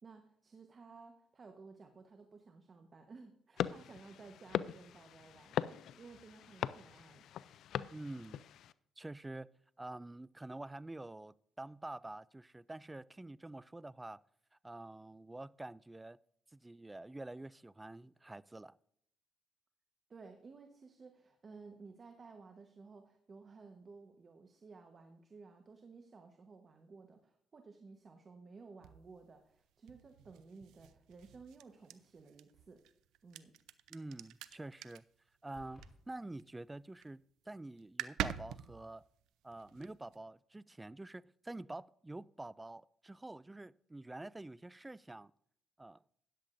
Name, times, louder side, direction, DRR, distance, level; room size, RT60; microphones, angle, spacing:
voice 1, 0.0-7.3 20.1-32.8 33.2-33.5, right 4 dB, 40° right, 1.1 m, -56 dB
sound 1, 3.6-8.7, left 10 dB, 75° left, 0.4 m, -40 dB
voice 2, 7.9-8.4 9.0-9.5 9.8-14.2 14.6-16.2 16.5-18.8 33.9-35.0 35.4-39.0 39.4-45.3 45.8-46.0, right 2 dB, 15° right, 0.3 m, -47 dB
sound 2, 28.8-36.5 36.8-37.2 37.5-37.6 37.8-40.2, right 11 dB, 90° right, 0.5 m, -46 dB
sound 3, 35.5-35.9, equal, 30° left, 3.1 m, -56 dB
13.5 x 10.0 x 2.6 m
cardioid pair, 90°, 0 cm